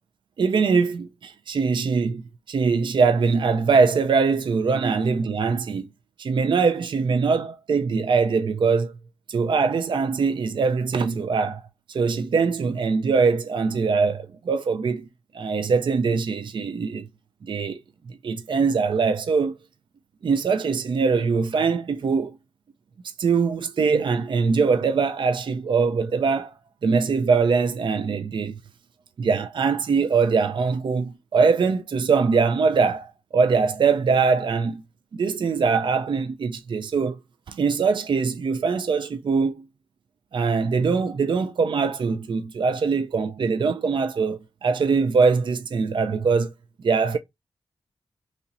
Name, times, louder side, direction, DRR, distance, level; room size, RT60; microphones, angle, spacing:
voice 1, 0.4-5.9 6.2-8.9 9.3-11.6 11.9-15.1 15.3-17.1 17.4-17.8 18.1-19.6 20.2-22.4 23.2-26.5 26.8-28.6 29.2-34.8 35.1-37.2 37.5-39.6 40.3-46.5 46.8-47.2, right 5 dB, 50° right, 0.4 m, -22 dB
4.2 x 2.9 x 2.5 m
cardioid pair, 45°, 10 cm